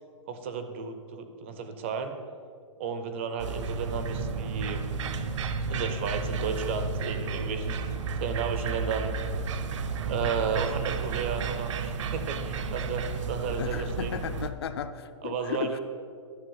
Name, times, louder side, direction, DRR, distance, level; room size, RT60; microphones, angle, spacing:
voice 1, 0.3-2.2 2.8-4.9 5.7-9.2 10.1-14.2 15.2-15.8, right 5 dB, 20° right, 8 dB, 0.4 m, -33 dB
sound 1, 3.4-14.5, right 5 dB, 70° right, 0.7 m, -32 dB
voice 2, 13.5-15.8, left 8 dB, 50° left, 11 dB, 0.5 m, -35 dB
12.0 x 5.7 x 5.6 m, 2.3 s
hypercardioid pair, 175°, 16 cm